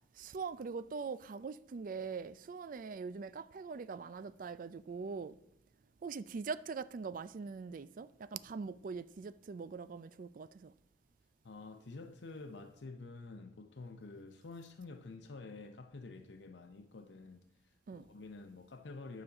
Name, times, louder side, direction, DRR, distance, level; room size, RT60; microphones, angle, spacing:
voice 1, 0.2-5.4 6.0-10.7 17.9-18.0, right 5 dB, 50° right, 0.4 m, -42 dB
voice 2, 11.4-19.2, left 3 dB, 80° left, 0.7 m, -49 dB
9.5 x 5.1 x 7.0 m
head